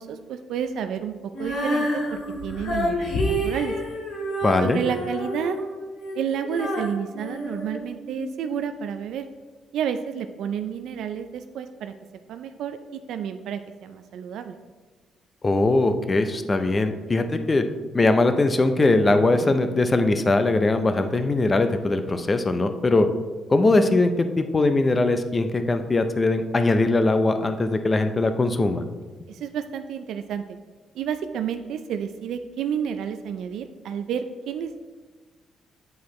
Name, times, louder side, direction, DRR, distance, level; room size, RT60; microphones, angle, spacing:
voice 1, 0.0-3.7 4.6-5.6 6.2-9.2 9.7-11.9 12.3-12.8 13.1-14.6 29.3-30.6 30.9-34.8, right 8 dB, 80° right, 8 dB, 0.3 m, -30 dB
Female singing, 1.3-8.4, equal, 75° left, 1.5 m, -29 dB
voice 2, 4.4-4.8 15.4-17.6 17.9-23.1 23.5-28.8, left 2 dB, 25° left, 8 dB, 0.5 m, -21 dB
8.4 x 4.6 x 3.1 m, 1.4 s
cardioid pair, 90°, 0 cm